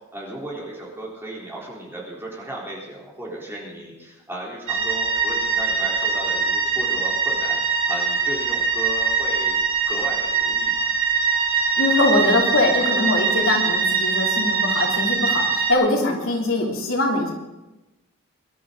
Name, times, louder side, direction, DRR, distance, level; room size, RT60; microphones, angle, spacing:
voice 1, 0.1-10.9, right 1 dB, 10° right, -4 dB, 3.8 m, -35 dB
sound 1, 4.7-15.7, right 5 dB, 85° right, 3.1 m, -22 dB
voice 2, 11.8-17.3, left 2 dB, 75° left, -1 dB, 3.3 m, -22 dB
23.0 x 12.0 x 4.0 m, 1.0 s
head